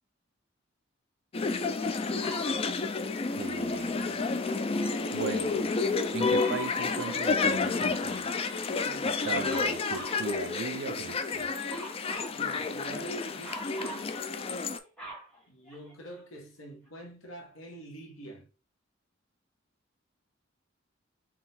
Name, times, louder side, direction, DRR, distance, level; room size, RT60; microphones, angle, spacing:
sound 1, 1.3-14.8, left 4 dB, 30° left, 0.3 m, -30 dB
Dog, 2.2-2.6 6.4-7.3 9.4-10.2 11.7-12.4 13.4-14.1 14.6-16.1 16.9-17.0, right 1 dB, 5° left, 1.4 m, -43 dB
voice 1, 3.4-4.3 5.1-5.7 6.1-8.3 9.0-11.5, right 6 dB, 60° right, 0.4 m, -38 dB
voice 2, 8.8-9.7 12.3-14.4 15.5-18.5, right 1 dB, 80° left, 1.2 m, -45 dB
3.7 x 2.4 x 4.2 m
head